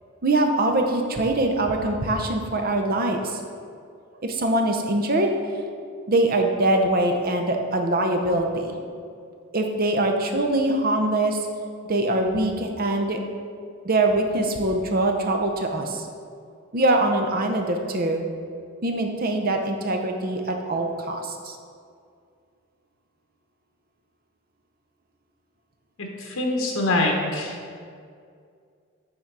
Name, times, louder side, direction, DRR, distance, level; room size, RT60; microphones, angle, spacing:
voice 1, 0.2-3.4 4.2-5.3 6.1-8.8 9.5-11.4 11.9-13.2 13.8-16.0 16.7-18.2 18.8-21.6, right 2 dB, 45° right, 3 dB, 0.8 m, -23 dB
voice 2, 26.2-27.6, left 2 dB, 80° left, 0 dB, 1.2 m, -24 dB
9.5 x 4.0 x 4.7 m, 2.3 s
head